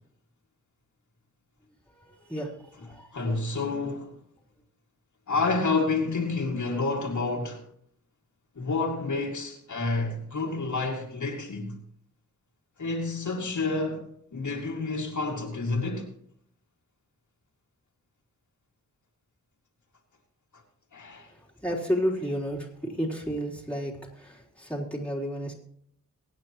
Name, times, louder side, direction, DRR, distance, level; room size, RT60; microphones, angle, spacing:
voice 1, 1.9-3.3 21.3-25.5, equal, 5° left, 3.7 m, -32 dB
voice 2, 3.1-4.2 5.3-7.6 8.6-11.8 12.8-16.1 20.9-21.3, left 3 dB, 65° left, 2.5 m, -29 dB
23.5 x 9.3 x 3.1 m
wide cardioid pair, 80°, 31 cm